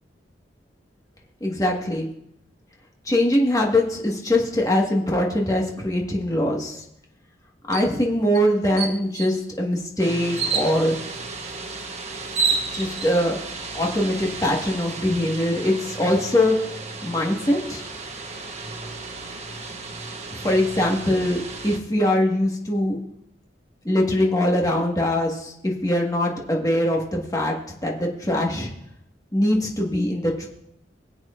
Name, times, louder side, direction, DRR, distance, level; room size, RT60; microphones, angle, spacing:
voice 1, 1.4-2.1 3.0-6.8 7.7-11.0 12.7-13.4 13.7-16.6 17.0-17.9 20.3-23.0 23.8-27.5 27.8-28.7 29.3-30.5, left 1 dB, 20° left, -1 dB, 1.6 m, -22 dB
sound 1, 7.7-7.9 8.3-8.4 8.8-9.4 10.4-10.7 11.8-11.9 12.2-13.1, right 5 dB, 70° right, 1.4 m, -25 dB
sound 2, 10.0-21.8, right 3 dB, 40° right, 1.1 m, -35 dB
23.5 x 7.9 x 2.5 m, 0.79 s
head